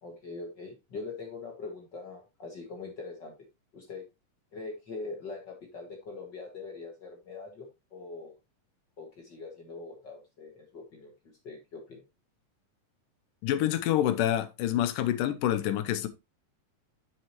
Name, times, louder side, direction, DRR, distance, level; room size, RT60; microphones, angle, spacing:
voice 1, 0.0-3.3 3.7-4.0 4.5-8.3 9.0-11.1 11.4-12.0, left 3 dB, 45° left, 1.7 m, -42 dB
voice 2, 13.4-16.1, left 12 dB, 75° left, 2.3 m, -27 dB
7.7 x 6.8 x 2.9 m
omnidirectional pair, 4.0 m